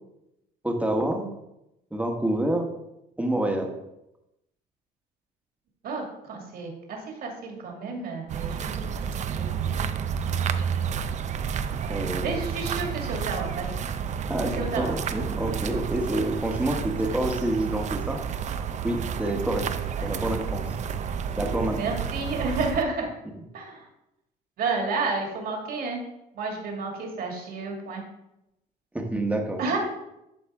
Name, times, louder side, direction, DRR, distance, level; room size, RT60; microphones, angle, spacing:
voice 1, 0.6-1.4 1.9-2.7 3.2-3.7 11.9-12.3 14.3-18.2 18.8-19.7 20.0-20.6 21.4-21.8 28.9-29.6, right 1 dB, 10° right, 3 dB, 1.2 m, -27 dB
voice 2, 5.8-8.9 9.3-9.5 11.8-13.8 14.6-14.9 20.0-20.1 21.8-23.1 23.5-23.8 24.6-26.0 26.4-28.0 29.6-29.8, right 3 dB, 60° right, 1 dB, 2.1 m, -31 dB
sound 1, 8.3-22.8, right 7 dB, 45° right, 0.5 m, -30 dB
11.5 x 4.2 x 3.6 m, 0.88 s
cardioid pair, 110°, 17 cm